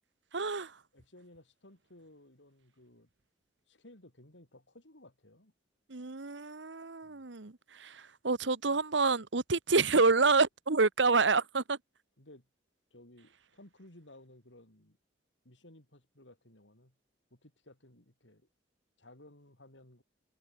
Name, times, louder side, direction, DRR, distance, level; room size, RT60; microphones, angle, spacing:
voice 1, 0.3-0.7 5.9-7.5 7.8-8.0 8.2-11.8, right 4 dB, 80° right, 1.3 m, -27 dB
voice 2, 0.9-3.1 3.7-5.5 7.0-7.2 12.2-12.5 12.9-15.0 15.4-16.9 17.3-18.5 19.0-20.0, left 1 dB, 90° left, 5.4 m, -57 dB
head